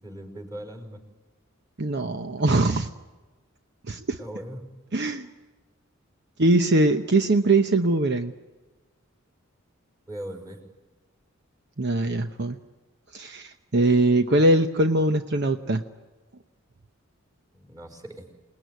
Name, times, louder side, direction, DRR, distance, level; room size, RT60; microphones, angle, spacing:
voice 1, 0.0-1.0 4.2-4.7 10.1-10.6 17.5-18.3, right 1 dB, 20° right, 4 dB, 5.1 m, -39 dB
voice 2, 1.8-2.9 3.9-4.2 4.9-5.3 6.4-8.3 11.8-12.6 13.1-15.8, right 2 dB, 55° right, 7 dB, 0.9 m, -22 dB
28.0 x 19.5 x 9.4 m, 1.3 s
head